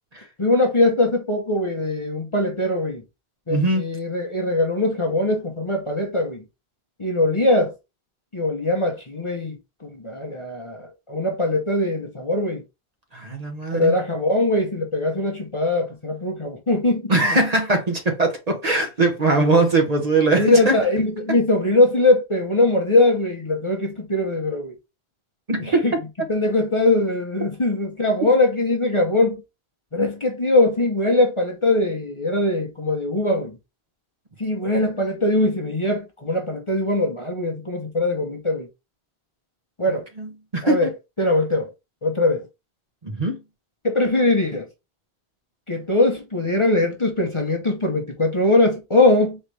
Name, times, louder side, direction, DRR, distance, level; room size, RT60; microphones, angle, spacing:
voice 1, 0.4-3.0 3.5-6.4 7.0-7.7 8.3-12.6 13.7-17.1 20.3-24.8 25.6-25.9 26.3-29.4 29.9-33.6 34.4-38.7 39.8-40.1 40.6-40.9 41.2-41.7 42.0-42.5 43.8-44.7 45.7-49.4, left 2 dB, 30° left, 0.9 m, -21 dB
voice 2, 3.5-3.8 13.1-13.9 17.1-20.8 25.5-25.8 40.2-40.9 43.0-43.4, right 2 dB, 40° right, 1.1 m, -21 dB
4.3 x 3.3 x 3.2 m
omnidirectional pair, 1.1 m